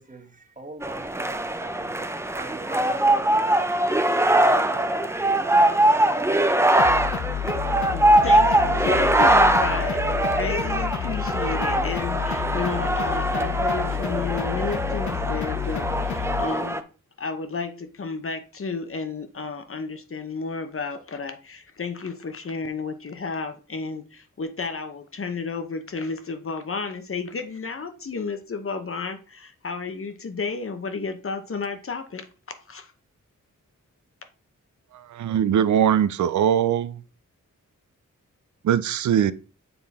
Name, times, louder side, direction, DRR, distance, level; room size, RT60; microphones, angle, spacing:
voice 1, 0.0-5.3, right 2 dB, 25° right, 1.4 m, -43 dB
sound 1, 0.8-16.8, right 1 dB, 10° right, 0.5 m, -22 dB
sound 2, 6.8-16.5, left 10 dB, 65° left, 0.5 m, -30 dB
voice 2, 7.9-16.8 17.2-32.3 32.7-32.9, left 4 dB, 45° left, 0.9 m, -32 dB
voice 3, 35.1-37.0 38.6-39.3, right 9 dB, 70° right, 0.5 m, -21 dB
7.0 x 3.8 x 4.2 m
wide cardioid pair, 100°, 32 cm